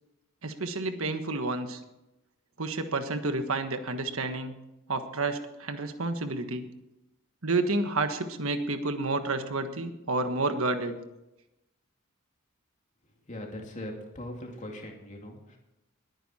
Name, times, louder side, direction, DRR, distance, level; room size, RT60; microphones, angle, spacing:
voice 1, 0.4-1.8 2.6-4.5 4.9-6.7 7.4-11.0, right 3 dB, 70° right, 8 dB, 1.4 m, -30 dB
voice 2, 13.2-15.6, left 1 dB, 35° left, 1 dB, 2.5 m, -40 dB
20.5 x 9.5 x 4.3 m, 0.92 s
head